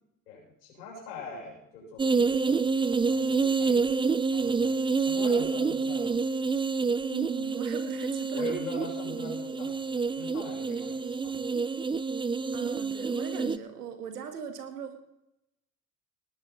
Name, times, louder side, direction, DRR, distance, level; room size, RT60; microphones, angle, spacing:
voice 1, 0.3-3.9 4.3-4.8 5.0-6.2 8.3-11.5, left 2 dB, 85° left, -3 dB, 7.0 m, -42 dB
sound 1, 2.0-13.6, right 4 dB, 10° right, 0.5 m, -28 dB
voice 2, 7.1-8.5 12.5-15.0, right 8 dB, 85° right, 7 dB, 2.0 m, -39 dB
19.0 x 11.0 x 4.3 m, 0.82 s
hypercardioid pair, 65°, 45 cm